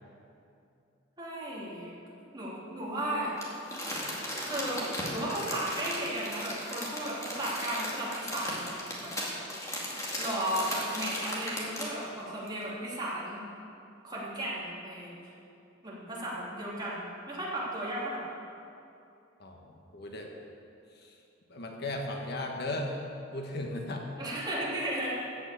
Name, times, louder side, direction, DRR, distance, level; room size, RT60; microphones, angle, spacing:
voice 1, 1.2-2.0 2.3-3.3 4.5-4.8 5.1-9.1 10.2-13.4 14.0-15.2 15.8-18.2 24.2-25.2, right 1 dB, 20° right, -6 dB, 3.1 m, -35 dB
Crumpling crinkling, 3.4-12.0 12.5-12.6, left 1 dB, 15° left, 2.3 m, -36 dB
voice 2, 19.4-20.3 21.0-21.1 21.5-22.9 23.3-24.1, left 2 dB, 60° left, 1 dB, 1.4 m, -36 dB
14.0 x 6.5 x 8.4 m, 2.6 s
head